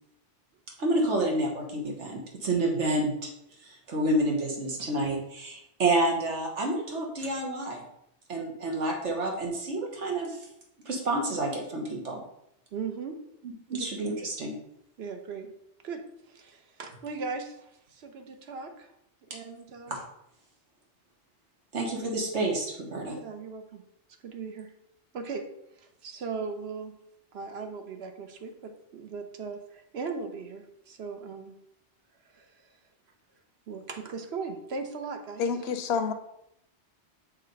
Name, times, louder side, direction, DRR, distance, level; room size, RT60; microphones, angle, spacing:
voice 1, 0.8-3.1 3.6-7.8 8.3-10.4 10.9-12.2 13.7-14.5 19.9-20.0 21.7-23.2, right 2 dB, 90° right, 0 dB, 1.7 m, -29 dB
voice 2, 12.7-13.2 13.7-13.9 15.0-15.5 15.8-18.9 19.3-20.0 23.1-23.8 24.2-24.7 25.1-25.5 25.8-26.9 27.3-31.6 32.3-32.6 33.7-35.5, right 5 dB, 65° right, 5 dB, 1.1 m, -38 dB
voice 3, 35.4-36.1, left 6 dB, 70° left, 8 dB, 0.9 m, -28 dB
6.6 x 3.2 x 5.2 m, 0.80 s
omnidirectional pair, 1.2 m